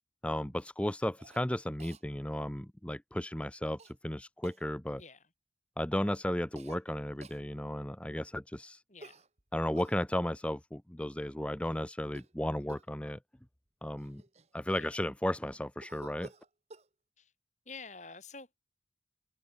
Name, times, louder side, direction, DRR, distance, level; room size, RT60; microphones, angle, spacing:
voice 1, 0.2-5.0 5.8-8.8 9.5-13.2 13.8-14.2 14.5-16.3, left 1 dB, 5° left, 0.7 m, -34 dB
Cough, 1.2-1.4 1.8-2.0 3.8-3.9 4.4-4.6 6.6-6.8 7.2-7.4 9.0-10.0 12.0-12.4 12.7-13.0 13.7-13.8 14.0-15.0 15.8-16.9, right 2 dB, 35° right, 1.6 m, -52 dB
voice 2, 8.9-9.2 14.7-15.0 17.2-17.3 17.7-18.5, left 4 dB, 40° left, 8.0 m, -48 dB
head